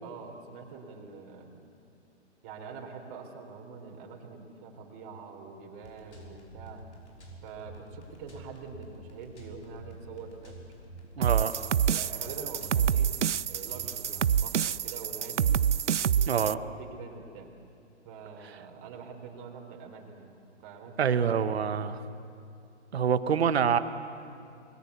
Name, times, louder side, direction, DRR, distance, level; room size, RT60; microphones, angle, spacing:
voice 1, 0.0-1.7 2.4-6.9 7.4-10.6 11.3-13.1 13.5-15.5 16.0-16.4 16.8-17.5 18.0-20.3 20.6-21.2, right 5 dB, 30° right, 2 dB, 3.8 m, -45 dB
sound 1, 5.8-14.5, right 1 dB, 70° left, 6.0 m, -49 dB
voice 2, 11.2-11.5 16.3-16.6 21.0-22.0 22.9-23.8, right 7 dB, 60° right, 11 dB, 1.4 m, -26 dB
sound 2, 11.2-16.5, right 8 dB, 80° right, 0.6 m, -27 dB
27.0 x 22.0 x 8.2 m, 2.5 s
figure-of-eight pair, 130°, 35 cm